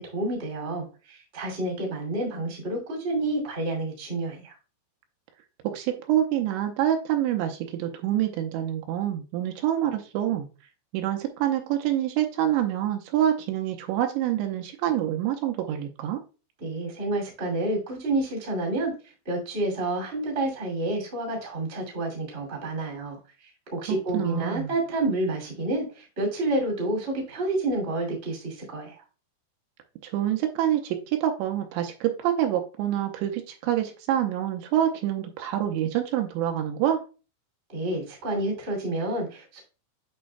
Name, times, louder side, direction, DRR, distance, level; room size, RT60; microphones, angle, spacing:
voice 1, 0.0-4.5 16.6-18.9 19.2-23.2 23.7-28.9 37.7-39.6, right 2 dB, 25° right, -1 dB, 1.5 m, -29 dB
voice 2, 5.6-10.5 10.9-16.2 23.9-24.7 30.0-37.0, right 11 dB, 85° right, 4 dB, 2.8 m, -26 dB
8.6 x 5.5 x 2.2 m, 0.34 s
omnidirectional pair, 5.4 m